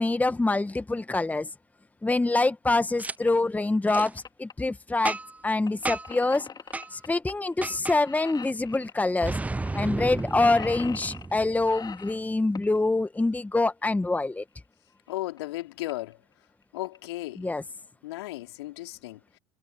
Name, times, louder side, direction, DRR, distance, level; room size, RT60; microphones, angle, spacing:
voice 1, 0.0-1.5 2.0-5.2 5.4-6.5 6.9-9.4 9.7-14.4 17.4-17.6, left 2 dB, 10° left, 1.6 m, -25 dB
Boom, 3.0-3.1 3.9-4.1 5.0-5.4 5.8-6.2 6.7-6.9 7.6-8.0 9.2-11.9, right 2 dB, 10° right, 0.7 m, -32 dB
sound 1, 3.2-3.3 3.7-4.5 5.7-7.3 7.6-7.8 8.0-8.9 9.7-9.8 10.0-11.3 11.6-12.8 14.4-14.5 15.1-15.2 15.4-15.5 15.8-16.1 16.6-17.0, left 6 dB, 30° left, 4.2 m, -42 dB
voice 2, 15.1-16.2 16.7-17.5 18.0-19.4, left 17 dB, 70° left, 4.4 m, -35 dB
figure-of-eight pair, 65°, 14 cm